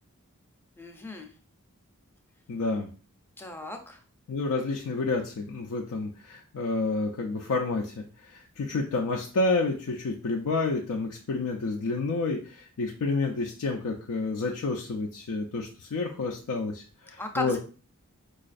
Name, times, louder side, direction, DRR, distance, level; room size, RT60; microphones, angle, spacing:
voice 1, 0.8-1.3 3.4-4.0 17.2-17.6, left 2 dB, 10° left, 3 dB, 0.5 m, -35 dB
voice 2, 2.5-2.9 4.3-17.6, left 3 dB, 80° left, 1 dB, 0.4 m, -29 dB
4.9 x 2.3 x 2.4 m, 0.39 s
head